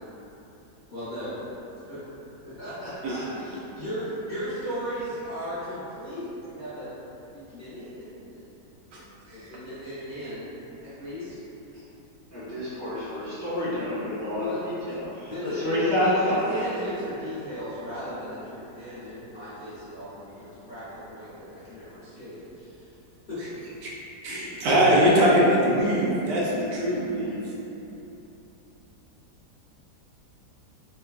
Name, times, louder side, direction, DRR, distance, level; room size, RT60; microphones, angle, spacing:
voice 1, 0.9-1.4 1.7-2.0 2.4-6.9 7.3-8.4 9.3-10.5 10.8-11.4 11.7-11.8 14.4-14.6 15.2-22.9 23.3-23.4, equal, 40° left, -15 dB, 0.7 m, -36 dB
voice 2, 12.3-16.5 24.2-24.5 27.2-27.3, left 1 dB, 25° left, -15 dB, 0.4 m, -28 dB
voice 3, 24.2-27.4, equal, 80° right, -5 dB, 1.2 m, -22 dB
3.1 x 2.2 x 2.3 m, 3.0 s
omnidirectional pair, 1.8 m